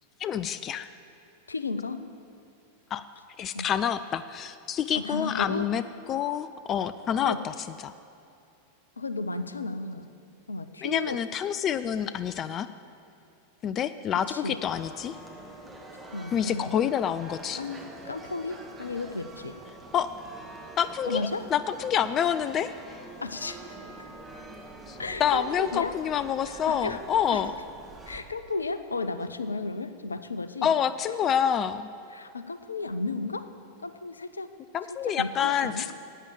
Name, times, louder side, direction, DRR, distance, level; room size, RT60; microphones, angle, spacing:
voice 1, 0.2-0.9 2.9-3.0 3.4-5.8 6.1-7.5 7.8-7.9 10.8-12.7 13.6-15.2 16.3-17.6 19.9-20.1 20.8-22.7 24.9-27.5 30.6-31.9 34.7-36.0, left 8 dB, 30° left, 13 dB, 0.4 m, -27 dB
voice 2, 1.5-2.0 3.5-3.7 4.9-5.7 7.2-7.4 9.0-10.1 10.5-11.2 14.3-14.6 16.1-16.7 17.6-19.6 21.0-21.5 23.2-23.6 25.0-26.0 26.5-27.0 27.3-27.4 28.1-30.7 32.1-33.5 33.8-34.5 35.2-35.9, left 3 dB, 75° left, 12 dB, 0.6 m, -33 dB
sound 1, 14.6-28.2, right 2 dB, 10° right, 1.7 m, -45 dB
12.0 x 8.8 x 7.6 m, 2.7 s
figure-of-eight pair, 90°, 0 cm